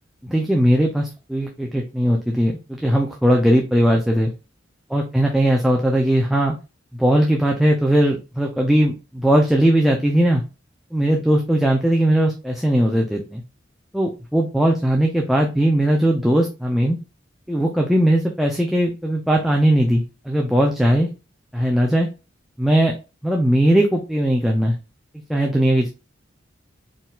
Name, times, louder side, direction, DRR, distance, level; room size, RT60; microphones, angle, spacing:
voice 1, 0.2-4.3 4.9-6.5 6.9-10.4 10.9-13.4 13.9-17.0 17.5-21.1 21.5-22.1 22.6-22.9 23.2-24.8 25.3-25.9, right 1 dB, ahead, 0 dB, 0.5 m, -19 dB
4.4 x 3.7 x 2.4 m, 0.29 s
head